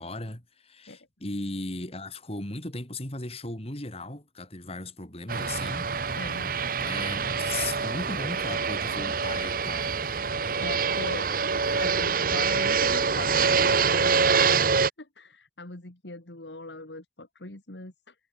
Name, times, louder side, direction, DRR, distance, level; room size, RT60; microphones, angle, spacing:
voice 1, 0.0-6.2 6.8-9.9, left 2 dB, 35° left, 4.8 m, -37 dB
Fixed-wing aircraft airplane, 5.3-14.9, right 5 dB, 50° right, 1.2 m, -25 dB
voice 2, 6.2-6.5 10.6-11.3 11.7-18.2, left 2 dB, 80° left, 2.7 m, -40 dB
head